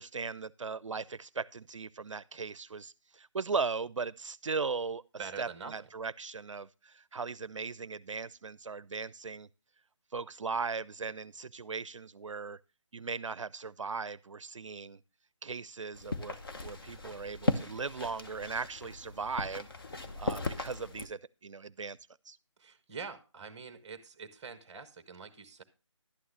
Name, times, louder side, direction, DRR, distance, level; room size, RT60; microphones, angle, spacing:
voice 1, 0.0-5.0 5.4-9.5 10.1-12.6 12.9-15.0 15.4-19.7 19.9-22.0 22.3-22.4, right 4 dB, 70° right, 0.4 m, -38 dB
voice 2, 5.2-5.9 22.6-25.6, right 5 dB, 10° right, 0.8 m, -45 dB
sound 1, 15.9-21.1, left 2 dB, 45° left, 1.1 m, -37 dB
11.5 x 9.3 x 3.2 m
figure-of-eight pair, 155°, 16 cm